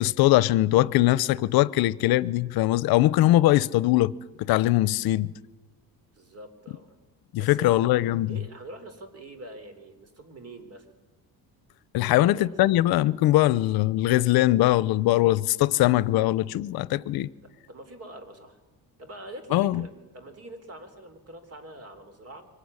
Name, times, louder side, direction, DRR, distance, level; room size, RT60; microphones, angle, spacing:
voice 1, 0.0-4.1 4.4-5.3 7.3-8.4 11.9-17.3 19.5-19.8, left 16 dB, 75° left, 0.7 m, -21 dB
voice 2, 6.1-7.0 7.4-7.9 8.3-10.9 12.0-12.8 17.4-18.6 19.0-22.5, right 1 dB, 40° right, 3.6 m, -44 dB
24.0 x 19.0 x 9.7 m
cardioid pair, 125°, 36 cm